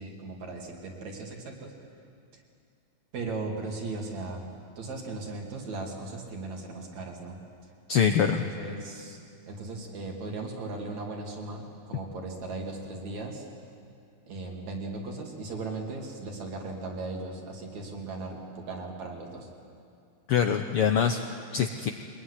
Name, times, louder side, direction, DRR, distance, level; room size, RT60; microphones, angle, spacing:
voice 1, 0.0-1.7 2.3-2.4 3.1-7.4 8.2-9.2 9.5-13.5 14.3-19.5, right 3 dB, 65° right, 0 dB, 4.0 m, -37 dB
voice 2, 7.9-8.4 20.3-21.2 21.5-21.9, left 7 dB, 70° left, 6 dB, 1.3 m, -24 dB
23.0 x 20.5 x 9.9 m, 2.4 s
omnidirectional pair, 3.5 m